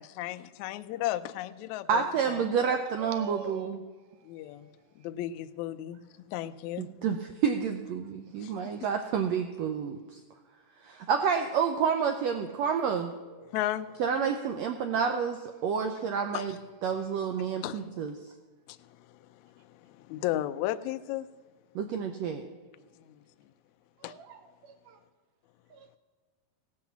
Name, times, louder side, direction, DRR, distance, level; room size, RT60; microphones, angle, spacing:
voice 1, 0.0-2.8 4.2-4.7 5.0-6.0 6.3-6.9 8.4-8.5 13.5-13.9 16.3-16.5 17.6-17.9 18.7-19.0 19.3-21.3 23.0-23.2 24.0-24.1, left 14 dB, 90° left, 11 dB, 1.6 m, -35 dB
voice 2, 1.9-3.8 6.8-10.2 10.8-13.1 14.0-18.1 21.7-22.4, right 6 dB, 90° right, 5 dB, 1.5 m, -29 dB
voice 3, 3.0-3.7 13.4-13.5 15.6-15.8 24.0-25.0 25.7-26.0, right 7 dB, 75° right, 7 dB, 2.5 m, -45 dB
16.5 x 7.6 x 7.1 m, 1.4 s
omnidirectional pair, 3.9 m